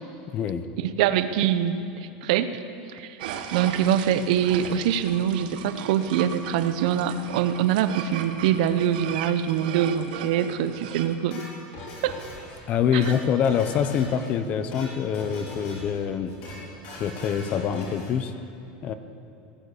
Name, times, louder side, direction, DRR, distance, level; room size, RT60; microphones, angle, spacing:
voice 1, 0.3-0.7 12.7-16.3 17.0-18.3 18.8-18.9, left 8 dB, 30° left, 10 dB, 0.6 m, -25 dB
voice 2, 0.8-2.5 2.9-3.2 3.5-11.4 12.0-12.2 12.9-13.0, right 9 dB, 60° right, 11 dB, 0.7 m, -24 dB
sound 1, 3.2-11.1, right 8 dB, 85° right, 1.3 m, -37 dB
sound 2, 11.3-12.6 12.9-14.3 14.6-14.9 15.1-16.0 16.3-16.6 16.8-18.1, left 1 dB, 45° left, 4.2 m, -40 dB
18.5 x 9.1 x 8.2 m, 2.6 s
supercardioid pair, 180°, 5 cm